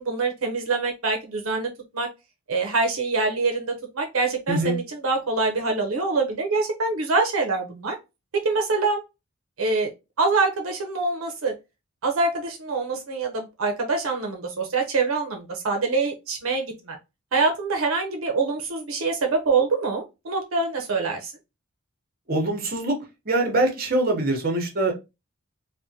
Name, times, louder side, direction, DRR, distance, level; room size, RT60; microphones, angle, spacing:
voice 1, 0.0-2.1 2.5-8.0 8.4-9.0 9.6-9.9 10.2-11.5 12.0-17.0 17.3-21.3, right 3 dB, 80° right, 3 dB, 0.6 m, -25 dB
voice 2, 4.5-4.8 22.3-23.0 23.3-24.9, right 2 dB, 45° right, 3 dB, 0.8 m, -23 dB
3.5 x 2.1 x 2.7 m, 0.25 s
head